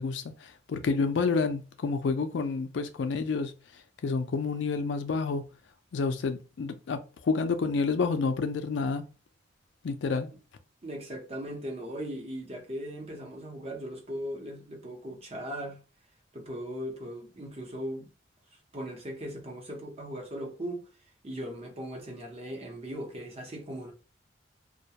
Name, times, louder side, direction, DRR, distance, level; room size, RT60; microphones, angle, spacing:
voice 1, 0.0-3.5 4.0-5.4 5.9-9.0 9.8-10.3, left 4 dB, 70° left, 0.4 m, -29 dB
voice 2, 10.8-15.8 16.3-18.1 18.7-20.9 21.2-23.9, equal, 35° right, 0.7 m, -38 dB
2.3 x 2.1 x 2.7 m
head